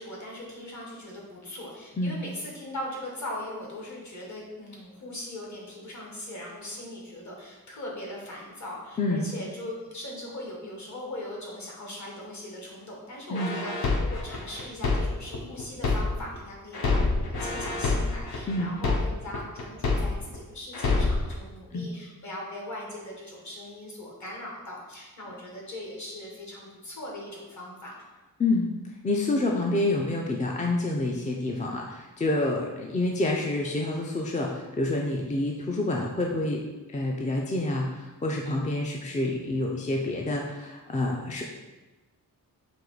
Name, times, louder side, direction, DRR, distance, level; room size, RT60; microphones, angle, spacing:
voice 1, 0.0-28.0, left 1 dB, 50° left, -3 dB, 1.3 m, -40 dB
sound 1, 13.4-16.4 16.7-20.4 20.7-21.3, left 3 dB, 90° left, 0.8 m, -27 dB
voice 2, 28.4-28.7 29.0-36.6 36.9-41.4, left 2 dB, 20° left, -1 dB, 0.3 m, -28 dB
4.6 x 2.9 x 3.8 m, 1.2 s
wide cardioid pair, 150°, 36 cm